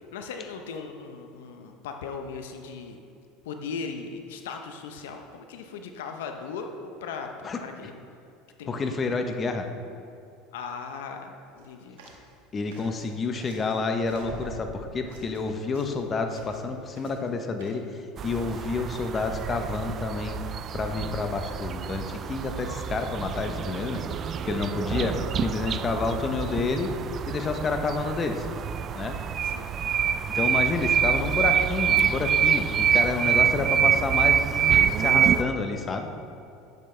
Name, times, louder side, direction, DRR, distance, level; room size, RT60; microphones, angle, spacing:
voice 1, 0.1-3.0 3.4-7.9 8.6-8.7 10.5-12.0 29.4-29.7, left 5 dB, 85° left, 5 dB, 0.7 m, -38 dB
voice 2, 7.4-7.9 8.7-9.7 12.5-20.4 20.7-26.9 27.3-28.5 28.9-29.2 30.3-36.1, left 4 dB, 30° left, 5 dB, 0.8 m, -29 dB
sound 1, 11.5-11.7 12.0-12.3 12.7-13.8 14.0-16.7 17.0-17.3 17.6-17.7, right 2 dB, 90° right, 1.7 m, -44 dB
sound 2, 18.2-35.4, right 8 dB, 40° right, 0.3 m, -26 dB
10.5 x 7.8 x 3.3 m, 2.7 s
supercardioid pair, 105°, 0 cm